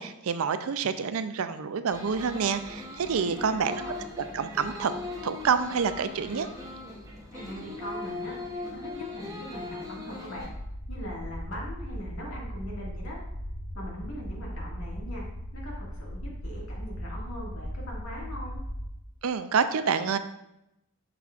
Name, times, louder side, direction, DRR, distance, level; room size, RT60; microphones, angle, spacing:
voice 1, 0.0-3.8 4.3-4.9 5.2-6.5 19.2-20.2, right 6 dB, 80° right, 11 dB, 0.5 m, -27 dB
sound 1, 1.9-10.5, left 2 dB, 15° right, 0.8 m, -39 dB
voice 2, 3.2-3.9 7.3-8.4 8.7-10.5 10.9-13.2 13.7-15.2 15.5-18.6, equal, 75° left, -3 dB, 2.0 m, -41 dB
sound 2, 10.4-18.9, equal, 25° left, 0.8 m, -38 dB
7.5 x 5.9 x 2.4 m, 0.84 s
head